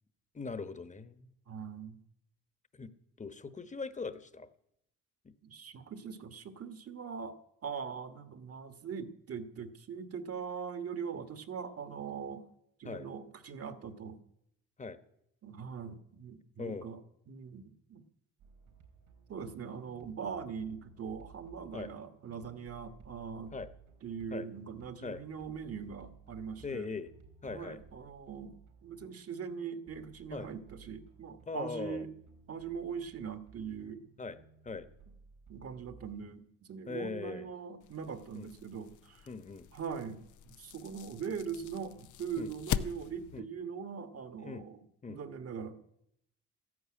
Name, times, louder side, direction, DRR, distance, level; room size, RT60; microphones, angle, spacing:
voice 1, 0.3-1.3 2.7-2.9 3.2-4.5 5.2-5.3 12.8-13.1 14.8-15.0 16.6-16.9 21.7-21.9 23.5-23.7 24.3-24.5 25.0-25.2 26.6-27.1 27.4-27.8 30.3-30.5 31.5-32.0 34.2-34.4 34.6-34.9 36.9-37.5 38.3-38.5 39.3-39.7 42.4-42.5 43.3-43.4 44.4-44.6 45.0-45.2, left 4 dB, 25° left, 12 dB, 1.1 m, -40 dB
voice 2, 1.5-2.0 5.4-12.4 12.8-14.2 15.4-18.0 19.3-23.5 24.0-26.9 27.4-28.6 28.8-32.1 32.5-34.0 35.5-39.3 39.7-44.8 45.1-45.8, right 6 dB, 50° right, 10 dB, 1.5 m, -41 dB
sound 1, 18.4-36.2, right 5 dB, 85° right, 5.0 m, -58 dB
sound 2, 37.8-43.4, left 10 dB, 75° left, 0.7 m, -42 dB
13.5 x 11.5 x 8.8 m, 0.77 s
cardioid pair, 90°, 30 cm